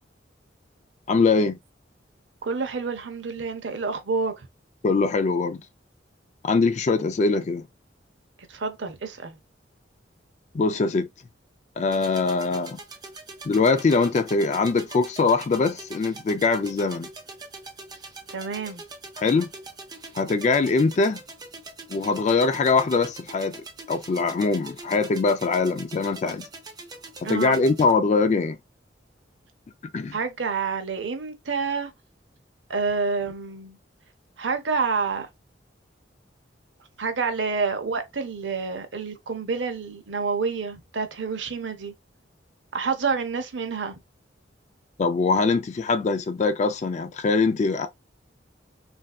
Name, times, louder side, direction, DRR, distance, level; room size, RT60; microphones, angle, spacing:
voice 1, 1.1-1.6 4.8-5.6 6.4-7.6 10.5-11.1 11.8-12.8 13.4-17.1 19.2-19.5 20.1-21.2 21.9-26.5 27.2-28.6 29.9-30.2 45.0-47.9, left 4 dB, 40° left, 0.3 m, -22 dB
voice 2, 2.4-4.3 8.5-9.4 18.3-18.8 27.2-27.6 30.1-31.9 32.7-33.8 34.4-35.3 37.0-41.9 42.7-43.9, right 4 dB, 80° right, 0.7 m, -28 dB
sound 1, 11.9-27.9, right 3 dB, 20° right, 0.6 m, -43 dB
3.3 x 2.6 x 2.3 m
head